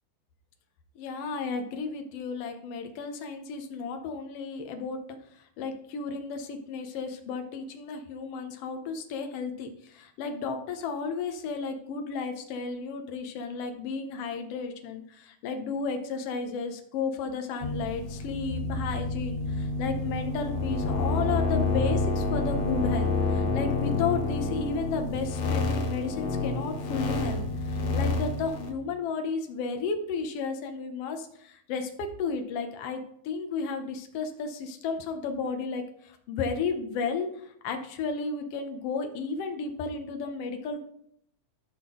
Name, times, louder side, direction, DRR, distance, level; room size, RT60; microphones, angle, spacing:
voice 1, 0.9-5.0 5.3-40.8, left 4 dB, 90° left, 5 dB, 1.3 m, -33 dB
sound 1, 17.6-28.7, left 3 dB, 70° left, 1.7 m, -29 dB
12.0 x 5.9 x 3.7 m, 0.70 s
omnidirectional pair, 3.9 m